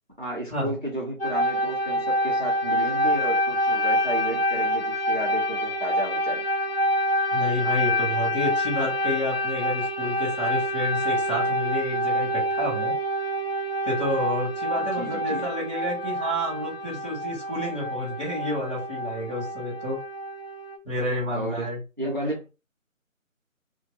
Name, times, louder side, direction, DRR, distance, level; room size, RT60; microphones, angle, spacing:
voice 1, 0.2-6.4 14.7-15.5 21.3-21.7 22.0-22.5, right 1 dB, 40° right, 0.5 m, -33 dB
sound 1, 1.2-20.8, equal, 50° left, 0.4 m, -27 dB
voice 2, 7.3-12.9 13.8-20.0 20.8-21.8, left 1 dB, 25° left, 1.3 m, -30 dB
2.5 x 2.2 x 2.6 m
figure-of-eight pair, 180°, 41 cm